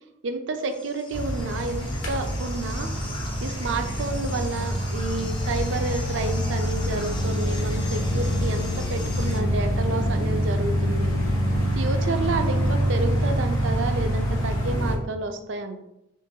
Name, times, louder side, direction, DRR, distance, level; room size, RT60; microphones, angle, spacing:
voice 1, 0.2-2.9 3.4-11.1 11.7-15.8, right 3 dB, 65° right, 6 dB, 0.4 m, -30 dB
sound 1, 0.6-9.4, left 2 dB, 25° left, 0.4 m, -41 dB
sound 2, 1.1-15.0, equal, 80° left, 0.9 m, -26 dB
sound 3, 2.6-3.1 3.7-5.2 5.5-6.0 6.5-8.0 8.3-8.8 9.4-10.9 11.2-11.7 12.2-12.4, equal, 85° right, 0.9 m, -39 dB
3.8 x 3.8 x 2.7 m, 0.84 s
head